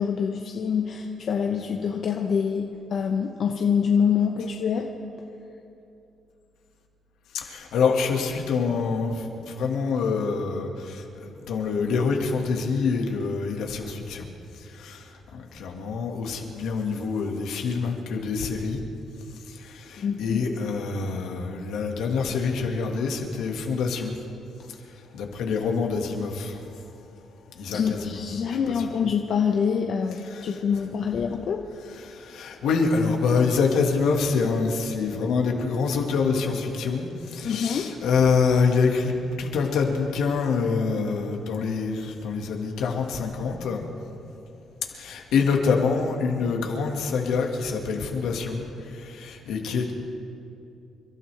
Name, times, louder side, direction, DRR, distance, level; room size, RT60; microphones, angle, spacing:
voice 1, 0.0-4.9 20.0-20.4 27.7-31.6 37.4-38.0, left 7 dB, 65° left, 2 dB, 1.0 m, -25 dB
voice 2, 7.4-14.3 14.5-18.8 19.4-24.1 24.8-26.8 27.5-28.2 28.5-28.9 30.2-30.6 31.9-43.8 44.9-49.9, left 5 dB, 80° left, 1 dB, 2.0 m, -26 dB
29.5 x 12.5 x 3.5 m, 2.7 s
cardioid pair, 90°, 0 cm